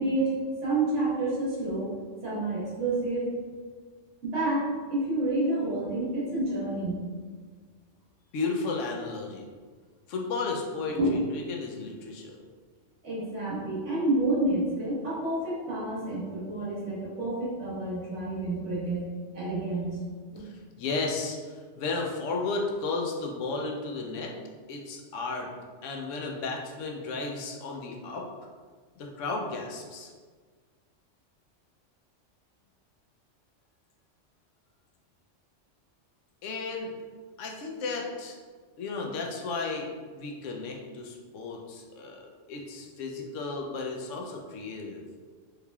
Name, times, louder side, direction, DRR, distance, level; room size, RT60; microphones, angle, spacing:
voice 1, 0.0-1.9 2.2-3.3 4.2-7.0 11.0-11.2 13.0-19.0 19.3-20.0, right 2 dB, 75° right, -7 dB, 1.5 m, -29 dB
voice 2, 8.3-9.5 10.1-12.4 20.4-24.3 24.7-25.5 25.8-28.3 29.0-30.1 36.4-36.9 37.4-38.4 38.8-42.2 42.5-45.0, left 3 dB, 90° left, 0 dB, 0.9 m, -34 dB
3.6 x 3.2 x 2.3 m, 1.5 s
omnidirectional pair, 1.2 m